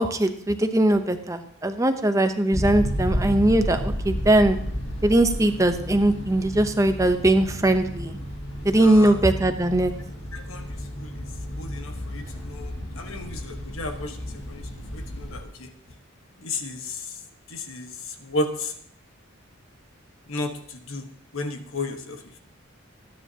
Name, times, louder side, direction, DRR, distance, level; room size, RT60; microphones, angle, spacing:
voice 1, 0.0-4.6 5.0-8.2 8.6-9.9, right 1 dB, 15° right, 8 dB, 0.7 m, -20 dB
sound 1, 2.5-15.4, equal, 55° left, 2.4 m, -32 dB
voice 2, 8.7-9.2 10.3-11.3 11.6-15.7 16.4-17.2 17.5-18.7 20.3-21.1 21.3-22.4, left 2 dB, 75° left, 6 dB, 1.3 m, -34 dB
20.5 x 9.7 x 2.9 m, 0.64 s
head